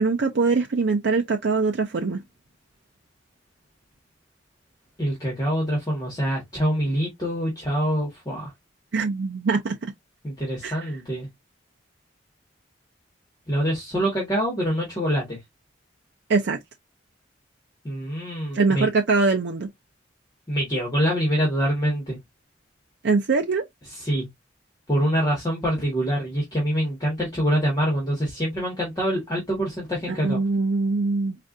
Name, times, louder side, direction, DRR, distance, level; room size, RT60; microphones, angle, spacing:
voice 1, 0.0-2.2 8.9-9.8 10.6-10.9 16.3-16.6 18.5-19.7 23.0-23.6 30.1-31.4, right 4 dB, 65° right, 0.5 m, -23 dB
voice 2, 5.0-8.5 10.2-11.3 13.5-15.4 17.8-18.9 20.5-22.2 24.0-24.3 24.9-30.4, equal, 20° left, 1.5 m, -25 dB
4.4 x 2.5 x 2.5 m
head